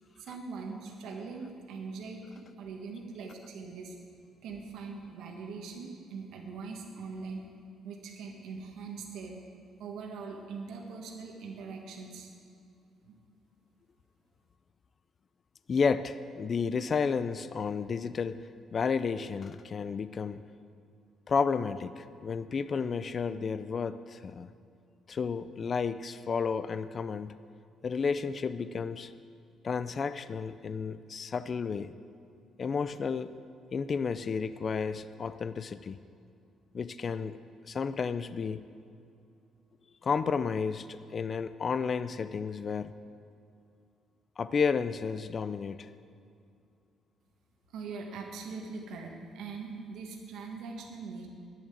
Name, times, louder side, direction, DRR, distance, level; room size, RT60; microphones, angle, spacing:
voice 1, 0.2-3.9 4.4-7.4 7.8-9.4 9.8-12.3 13.0-13.2 47.7-51.3, right 4 dB, 75° right, 1 dB, 1.5 m, -42 dB
voice 2, 15.7-20.4 21.3-24.5 25.1-27.4 27.8-29.1 29.6-31.9 32.6-33.3 33.7-36.0 36.7-37.4 37.6-38.7 40.0-43.0 44.4-45.9, left 5 dB, 35° left, 13 dB, 0.3 m, -32 dB
10.5 x 7.1 x 7.9 m, 2.5 s
cardioid pair, 140°, 0 cm